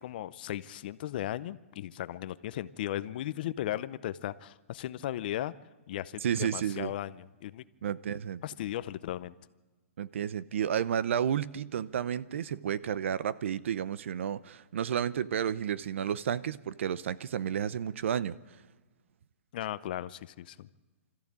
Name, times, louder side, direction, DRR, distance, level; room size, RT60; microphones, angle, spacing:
voice 1, 0.0-5.5 5.9-7.6 8.1-9.4 19.5-20.7, left 13 dB, 40° left, 0.6 m, -36 dB
voice 2, 6.2-6.9 7.8-8.4 10.0-18.4, right 9 dB, 60° right, 0.7 m, -31 dB
26.0 x 14.0 x 8.7 m
hypercardioid pair, 165°, 7 cm